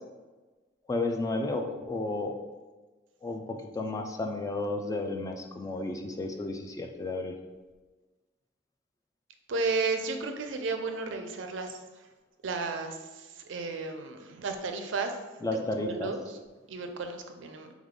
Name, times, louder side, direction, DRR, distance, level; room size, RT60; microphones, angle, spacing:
voice 1, 0.9-2.3 3.2-7.3 15.4-16.1, left 2 dB, 20° left, 4 dB, 0.3 m, -32 dB
voice 2, 9.5-11.8 12.4-15.2 15.5-16.4 16.7-17.7, right 4 dB, 80° right, 6 dB, 0.5 m, -33 dB
3.7 x 3.1 x 3.6 m, 1.2 s
head